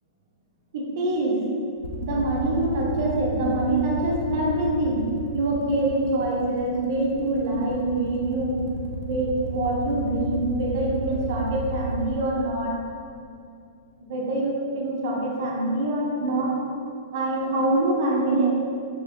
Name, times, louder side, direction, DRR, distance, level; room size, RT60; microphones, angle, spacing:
voice 1, 0.7-1.4 2.0-5.1 5.3-8.6 9.0-12.8 14.0-16.5 17.1-18.5, right 2 dB, 50° right, -2 dB, 0.7 m, -25 dB
sound 1, 1.8-12.0, left 3 dB, 60° left, 0.5 m, -33 dB
4.6 x 2.1 x 2.9 m, 2.4 s
figure-of-eight pair, 105°, 2 cm